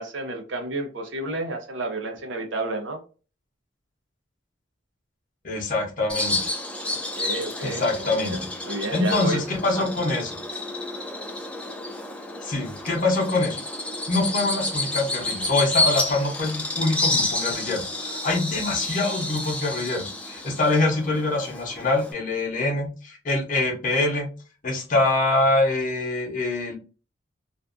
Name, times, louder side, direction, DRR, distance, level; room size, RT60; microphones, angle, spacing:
voice 1, 0.0-3.0 7.2-8.4 8.6-9.4 9.7-9.8, right 2 dB, 75° right, 4 dB, 0.7 m, -31 dB
voice 2, 5.4-6.5 7.6-8.4 8.9-10.4 12.4-13.6 14.1-24.3 24.6-26.7, left 2 dB, 45° left, 1 dB, 0.8 m, -24 dB
Bird vocalization bird call bird song, 6.1-22.1, left 2 dB, 5° left, 0.4 m, -30 dB
2.5 x 2.2 x 2.4 m, 0.35 s
head